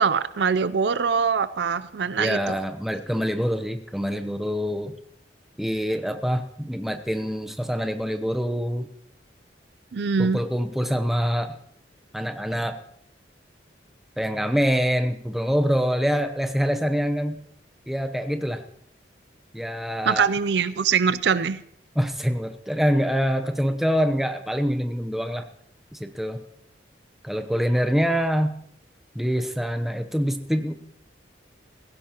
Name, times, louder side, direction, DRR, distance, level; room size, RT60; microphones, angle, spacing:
voice 1, 0.0-2.5 9.9-10.4 20.1-21.6, right 6 dB, 70° right, 16 dB, 0.5 m, -23 dB
voice 2, 2.2-4.9 5.6-8.9 10.2-11.6 12.1-12.8 14.2-17.4 17.9-18.6 19.5-20.3 21.9-25.5 25.9-26.4 27.2-28.5 29.1-30.7, equal, ahead, 7 dB, 0.7 m, -25 dB
16.0 x 16.0 x 3.0 m, 0.68 s
head